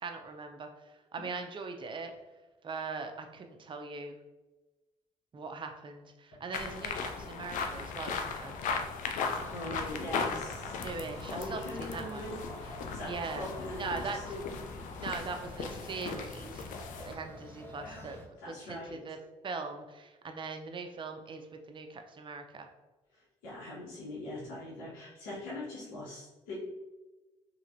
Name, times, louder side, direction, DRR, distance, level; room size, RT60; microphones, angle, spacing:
voice 1, 0.0-2.1 2.6-4.2 5.3-8.5 10.8-12.3 13.0-14.2 14.9-16.7 17.0-18.2 18.5-19.2 19.4-22.7, right 4 dB, 35° right, 5 dB, 0.5 m, -41 dB
sound 1, 6.5-17.1, left 5 dB, 70° left, 0.4 m, -37 dB
sound 2, 9.4-18.3, left 1 dB, 15° left, 0.7 m, -49 dB
voice 2, 9.5-11.0 11.3-14.4 17.8-18.1 18.4-19.0 23.1-26.6, left 1 dB, 85° left, -7 dB, 1.1 m, -42 dB
3.2 x 2.8 x 2.6 m, 1.1 s
supercardioid pair, 65°, 14 cm